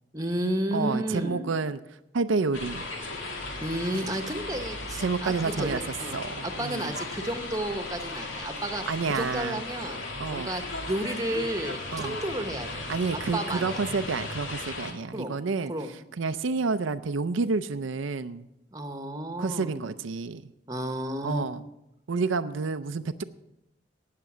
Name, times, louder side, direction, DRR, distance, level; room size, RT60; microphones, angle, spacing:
voice 1, 0.1-1.5 3.6-8.8 9.1-12.8 13.1-13.8 15.1-15.3 15.7-15.9 18.7-19.8 20.7-21.5, right 1 dB, 20° right, 7 dB, 1.0 m, -32 dB
voice 2, 0.7-1.8 2.1-2.9 5.0-5.8 6.1-6.9 8.9-9.6 10.2-10.5 11.9-12.2 12.9-15.7 16.1-18.5 19.4-20.5 21.2-21.6 22.1-23.2, right 4 dB, 85° right, 10 dB, 0.5 m, -29 dB
sound 1, 2.5-14.9, left 2 dB, 85° left, 2.4 m, -36 dB
18.0 x 6.8 x 6.1 m, 0.88 s
head